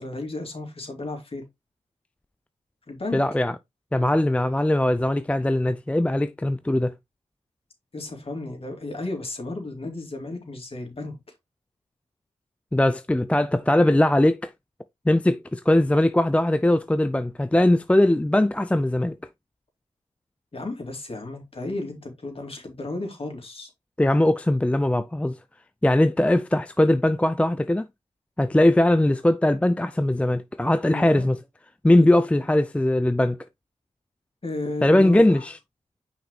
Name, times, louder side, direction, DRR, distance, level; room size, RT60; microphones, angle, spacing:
voice 1, 0.0-1.4 2.9-3.2 7.9-11.2 20.5-23.7 30.9-31.3 32.0-32.1 34.4-35.5, left 2 dB, 45° left, 3.0 m, -33 dB
voice 2, 3.1-3.5 3.9-6.9 12.7-14.5 15.1-19.2 24.0-25.4 25.8-27.9 28.4-31.4 31.8-33.4 34.8-35.6, left 1 dB, 10° left, 0.4 m, -20 dB
5.9 x 5.1 x 3.3 m
cardioid pair, 45°, 13 cm